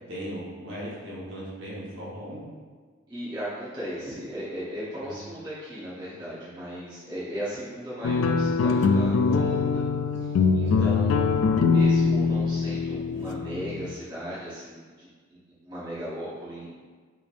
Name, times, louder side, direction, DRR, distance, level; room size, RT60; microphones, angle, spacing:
voice 1, 0.1-2.4 5.0-5.2 10.2-10.3 10.7-10.9, equal, 60° right, -8 dB, 1.3 m, -38 dB
voice 2, 3.1-9.8 10.2-16.7, equal, 20° right, -10 dB, 0.9 m, -37 dB
sound 1, 8.0-13.9, left 4 dB, 90° left, 0.3 m, -23 dB
4.9 x 3.3 x 2.5 m, 1.5 s
head